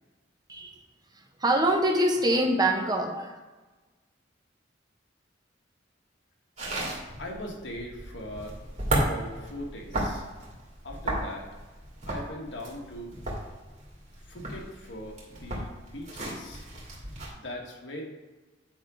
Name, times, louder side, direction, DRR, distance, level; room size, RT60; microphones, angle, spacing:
voice 1, 1.4-3.3, right 1 dB, 20° right, 3 dB, 0.9 m, -24 dB
sound 1, 6.6-17.3, right 1 dB, 40° right, 2.2 m, -34 dB
voice 2, 7.2-8.6 8.9-10.2 10.8-11.5 12.0-13.2 14.3-16.7 17.3-18.0, left 1 dB, 70° left, 0 dB, 1.5 m, -40 dB
9.1 x 3.6 x 4.9 m, 1.3 s
head